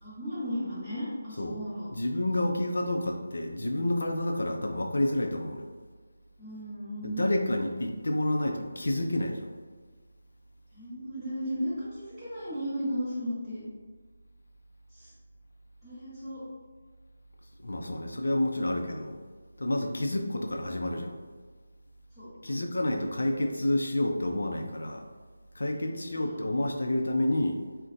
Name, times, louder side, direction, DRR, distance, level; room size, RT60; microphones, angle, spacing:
voice 1, 0.0-1.9 2.3-2.4 6.4-7.2 10.7-13.7 14.9-15.1 15.8-16.4 22.2-22.6 25.6-26.5, equal, 5° left, -18 dB, 0.8 m, -36 dB
voice 2, 1.9-5.7 7.0-9.5 17.6-19.2 19.6-21.1 22.4-25.1 25.6-27.6, left 1 dB, 85° left, 3 dB, 0.4 m, -29 dB
4.0 x 2.1 x 2.5 m, 1.4 s
figure-of-eight pair, 175°, 0 cm